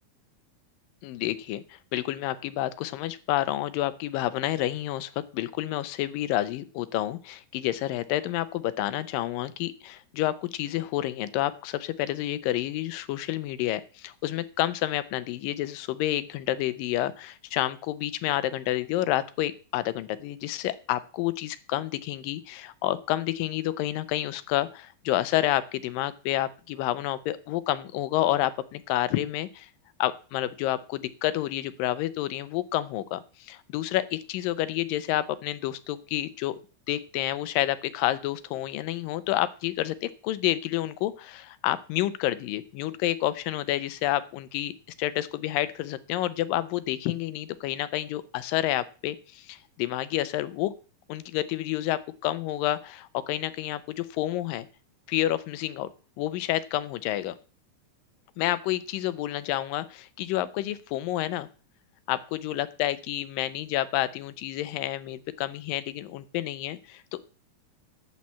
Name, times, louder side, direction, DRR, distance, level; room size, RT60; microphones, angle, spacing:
voice 1, 1.0-29.7 30.0-36.6 36.9-44.7 45.0-50.7 51.1-54.7 55.1-55.9 56.2-57.4 58.4-61.5 62.1-67.2, left 14 dB, 90° left, 15 dB, 2.5 m, -29 dB
12.0 x 4.4 x 8.3 m, 0.37 s
omnidirectional pair, 3.9 m